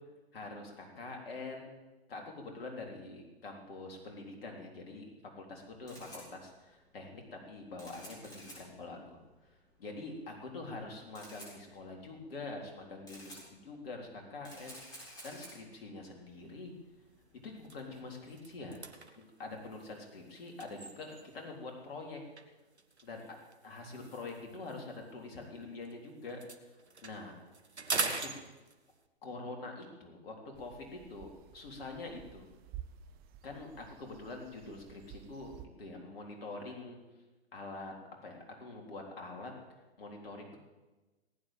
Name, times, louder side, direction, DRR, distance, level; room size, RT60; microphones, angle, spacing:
voice 1, 0.3-1.7 2.1-5.1 5.3-9.2 9.8-16.7 17.4-18.8 19.2-22.2 23.0-23.2 23.6-26.4 27.0-27.3 28.0-28.3 29.2-32.5 33.4-35.5 35.8-37.0 37.5-37.9 38.2-39.5 40.0-40.6, left 3 dB, 65° left, 1 dB, 3.7 m, -45 dB
Camera, 5.6-18.9, equal, 10° left, 7.8 m, -55 dB
sound 1, 16.4-16.6 17.1-17.2 17.6-21.5 22.4-25.9 26.2-29.1, right 3 dB, 90° right, 1.6 m, -42 dB
sound 2, 30.5-35.7, right 11 dB, 30° right, 1.2 m, -52 dB
18.5 x 9.7 x 7.9 m, 1.2 s
figure-of-eight pair, 115°, 32 cm